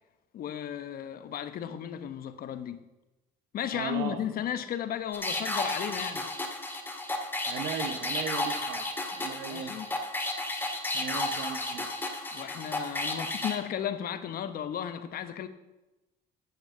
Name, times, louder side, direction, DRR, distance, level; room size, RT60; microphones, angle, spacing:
voice 1, 0.3-2.8 3.5-6.3 9.5-9.9 12.3-15.5, left 10 dB, 60° left, 1.2 m, -34 dB
voice 2, 3.7-4.2 7.5-9.7 10.9-11.9, right 8 dB, 80° right, 1.1 m, -37 dB
sound 1, 5.1-13.6, left 2 dB, 10° left, 2.0 m, -33 dB
9.4 x 8.7 x 8.2 m
cardioid pair, 110°, 17 cm